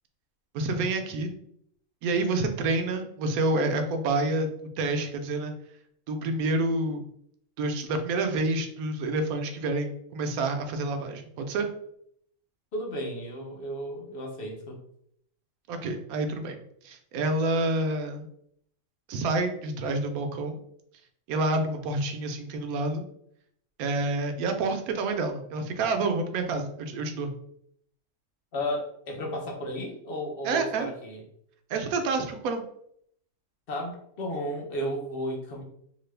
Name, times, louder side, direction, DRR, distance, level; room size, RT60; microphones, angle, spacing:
voice 1, 0.5-1.3 2.0-4.5 4.8-5.5 6.1-7.1 7.6-11.7 15.7-16.6 16.8-18.3 19.1-20.6 21.3-23.0 23.8-27.3 30.4-30.9 31.7-32.6, right 2 dB, 90° right, 5 dB, 1.1 m, -28 dB
voice 2, 12.7-14.8 28.5-31.2 33.7-35.6, equal, 50° left, 0 dB, 0.8 m, -33 dB
2.9 x 2.4 x 3.2 m, 0.69 s
omnidirectional pair, 1.5 m